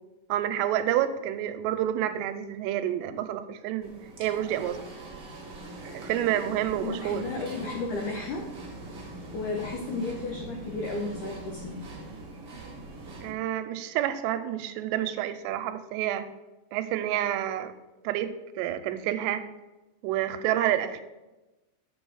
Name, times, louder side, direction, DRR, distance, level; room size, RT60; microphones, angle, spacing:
voice 1, 0.3-3.9 4.2-4.8 5.9-7.3 13.2-16.3 16.7-17.7 18.0-19.4 20.0-21.0, right 11 dB, 85° right, 10 dB, 2.8 m, -29 dB
sound 1, 3.8-13.3, right 1 dB, 40° right, 1.6 m, -42 dB
voice 2, 6.8-8.4 9.3-11.7, left 3 dB, 85° left, 1 dB, 1.7 m, -33 dB
7.6 x 6.2 x 6.3 m, 1.1 s
omnidirectional pair, 5.0 m